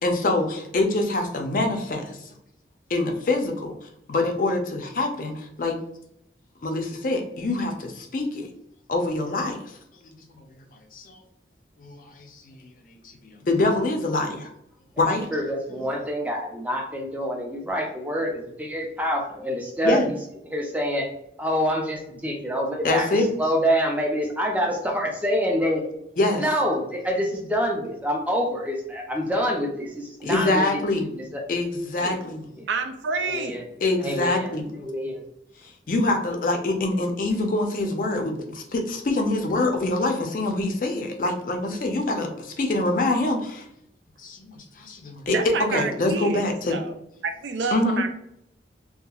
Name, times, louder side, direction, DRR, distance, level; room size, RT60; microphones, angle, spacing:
voice 1, 0.0-2.2 2.9-3.7 4.1-5.8 6.6-8.5 8.9-9.7 10.3-10.4 10.9-11.2 11.8-12.6 13.2-14.5 15.0-15.3 19.8-20.1 22.8-23.3 26.2-26.4 30.2-31.1 31.5-32.5 33.8-34.7 35.9-43.7 44.2-45.3 45.7-46.8 47.7-48.0, left 2 dB, 50° left, 4 dB, 0.4 m, -25 dB
voice 2, 15.3-20.1 20.4-21.1 21.4-25.9 26.3-31.4 32.6-32.7 33.2-33.6 34.0-34.5 34.8-35.2, equal, 10° right, 1 dB, 0.4 m, -26 dB
voice 3, 32.7-33.6 45.3-47.0 47.2-48.1, right 4 dB, 85° right, 6 dB, 0.4 m, -29 dB
2.8 x 2.3 x 2.3 m, 0.78 s
head